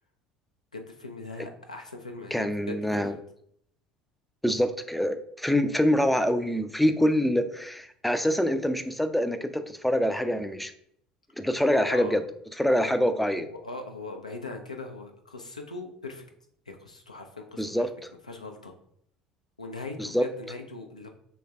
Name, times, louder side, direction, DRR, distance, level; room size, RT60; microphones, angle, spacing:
voice 1, 0.7-3.2 11.9-12.2 12.7-13.0 13.3-16.2 16.7-17.9 18.3-18.7 19.6-21.1, left 2 dB, 90° left, 4 dB, 0.4 m, -40 dB
voice 2, 2.3-3.1 4.4-10.7 11.4-12.2 12.6-13.5 17.6-17.9 20.0-20.2, equal, ahead, 9 dB, 0.3 m, -25 dB
3.1 x 2.2 x 3.4 m, 0.68 s
figure-of-eight pair, 65°, 4 cm